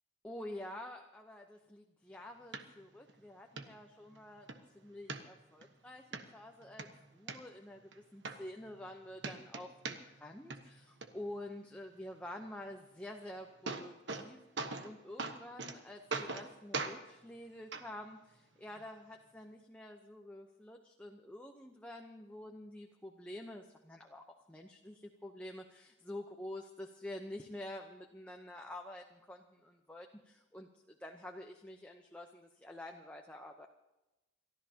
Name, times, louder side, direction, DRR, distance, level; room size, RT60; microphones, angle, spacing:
voice 1, 0.2-14.4 14.8-33.7, left 1 dB, 5° left, 1 dB, 0.8 m, -48 dB
sound 1, 2.5-2.6 3.1-3.2 3.6-3.7 4.1-4.6 5.1-5.7 6.1-6.2 6.6-7.4 7.9-8.0 8.2-8.9 9.2-10.3 10.5-11.1 13.1-13.2 13.4-14.3 14.6-14.9 15.2-15.8 16.1-16.5 16.7-17.0 17.7-17.8 18.7-18.8, right 4 dB, 75° right, 1.2 m, -40 dB
29.5 x 13.5 x 2.9 m, 1.0 s
head